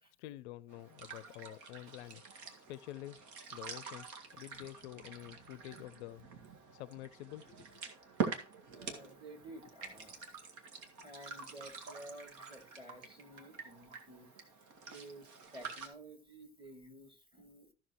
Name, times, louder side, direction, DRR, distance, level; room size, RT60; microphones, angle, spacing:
voice 1, 0.2-2.2 2.7-3.2 3.5-6.3 6.7-7.6, left 15 dB, 70° left, 0.6 m, -48 dB
sound 1, 0.7-15.9, right 5 dB, 55° right, 1.9 m, -46 dB
voice 2, 8.7-10.3 11.0-14.5 14.8-17.7, right 1 dB, 15° right, 2.6 m, -53 dB
14.5 x 6.0 x 3.0 m
hypercardioid pair, 65°, 35 cm